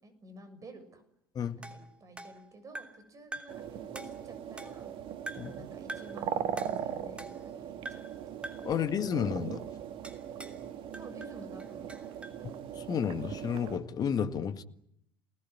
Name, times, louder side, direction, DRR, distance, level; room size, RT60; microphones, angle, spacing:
voice 1, 0.0-1.0 1.6-4.9 5.5-8.2 10.9-12.2, right 1 dB, 30° right, 7.0 m, -51 dB
sound 1, 1.6-3.1 3.3-3.7 3.9-4.9 5.3-5.6 5.9-6.2 6.6-7.6 7.8-8.2 8.4-8.8 10.0-10.6 10.9-12.4, right 1 dB, 10° right, 3.1 m, -45 dB
sound 2, 3.5-13.8, right 9 dB, 45° right, 2.0 m, -39 dB
voice 2, 8.6-9.6 12.4-14.6, left 8 dB, 35° left, 1.8 m, -32 dB
29.5 x 19.0 x 9.7 m
figure-of-eight pair, 70°, 12 cm